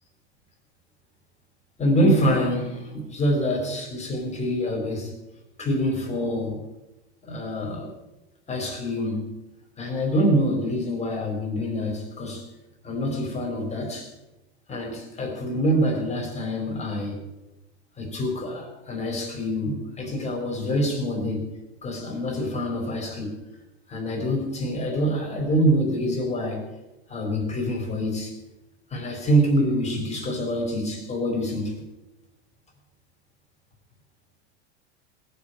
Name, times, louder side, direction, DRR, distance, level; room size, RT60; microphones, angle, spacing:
voice 1, 1.8-5.1 5.6-6.6 7.2-7.9 8.5-9.4 9.8-12.5 12.8-14.1 14.7-17.2 18.0-23.4 23.9-26.6 27.1-28.3 28.9-31.8, equal, 20° left, 4.4 m, -26 dB
19.5 x 7.1 x 8.1 m
supercardioid pair, 130°, 34 cm